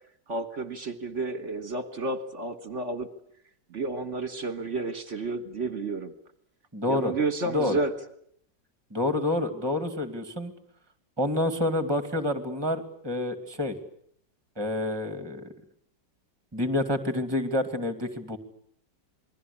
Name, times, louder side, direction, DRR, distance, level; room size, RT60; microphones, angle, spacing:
voice 1, 0.3-3.1 3.7-6.1 6.9-7.9, right 3 dB, 45° right, 11 dB, 1.7 m, -31 dB
voice 2, 6.7-7.1 7.5-7.8 8.9-10.5 11.2-13.7 14.6-15.5 16.5-18.4, left 1 dB, 15° right, 10 dB, 2.4 m, -28 dB
27.5 x 21.0 x 8.6 m, 0.67 s
omnidirectional pair, 1.9 m